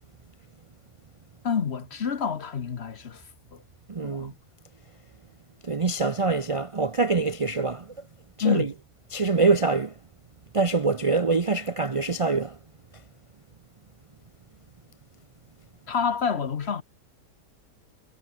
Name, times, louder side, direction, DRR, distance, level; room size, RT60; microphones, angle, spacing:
voice 1, 1.4-3.2 3.5-3.6 4.0-4.3 8.4-8.7 15.9-16.8, left 6 dB, 45° left, 1.1 m, -28 dB
voice 2, 3.9-4.3 5.6-7.9 8.4-8.7 9.1-9.9 10.5-12.6, right 4 dB, 60° right, 0.3 m, -24 dB
omnidirectional pair, 1.8 m